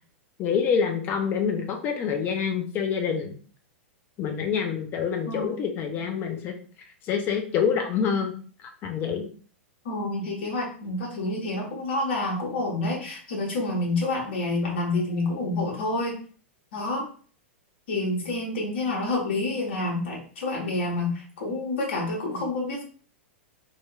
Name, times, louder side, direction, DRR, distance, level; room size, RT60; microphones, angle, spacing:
voice 1, 0.4-3.3 4.2-6.6 7.0-8.3 8.8-9.3, left 7 dB, 30° left, 4 dB, 0.5 m, -26 dB
voice 2, 5.3-5.6 9.8-16.1 16.7-17.1 17.9-22.8, left 2 dB, 60° left, -2 dB, 1.3 m, -28 dB
2.8 x 2.8 x 2.2 m, 0.43 s
figure-of-eight pair, 100°, 7 cm